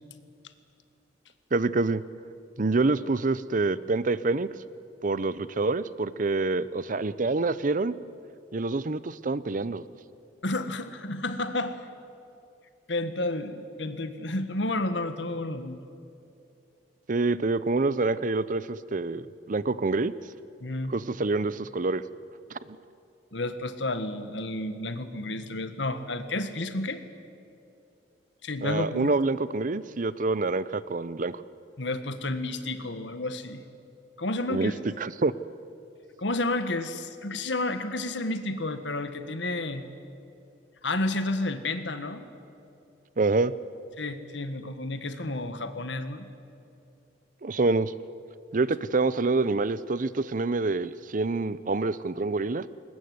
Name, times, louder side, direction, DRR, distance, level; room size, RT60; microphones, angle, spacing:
voice 1, 1.5-2.0 2.6-4.5 5.0-8.0 8.5-9.8 17.1-20.1 20.9-22.0 22.5-22.6 28.6-31.4 34.5-34.7 35.0-35.3 43.2-43.5 47.4-47.9 48.5-52.7, right 3 dB, 45° right, 17 dB, 0.6 m, -26 dB
voice 2, 10.4-11.8 12.9-15.8 20.6-20.9 23.3-27.0 28.4-29.1 31.8-33.6 34.2-34.7 36.2-39.9 40.8-42.3 44.0-46.3, left 2 dB, 80° left, 10 dB, 1.6 m, -31 dB
21.5 x 20.0 x 9.5 m, 2.7 s
head